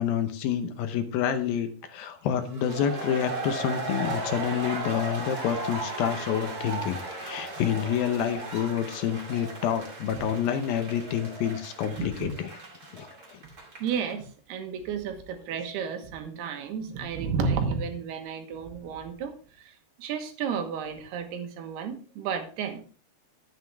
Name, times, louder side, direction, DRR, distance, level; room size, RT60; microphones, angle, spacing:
voice 1, 0.0-12.5 12.9-13.4, left 9 dB, 75° left, 8 dB, 2.5 m, -28 dB
sound 1, 2.5-14.1, right 2 dB, 30° right, 2.1 m, -36 dB
voice 2, 12.0-12.3 13.8-19.7 20.0-22.9, right 6 dB, 80° right, 6 dB, 3.2 m, -32 dB
11.0 x 9.3 x 3.4 m, 0.40 s
omnidirectional pair, 4.6 m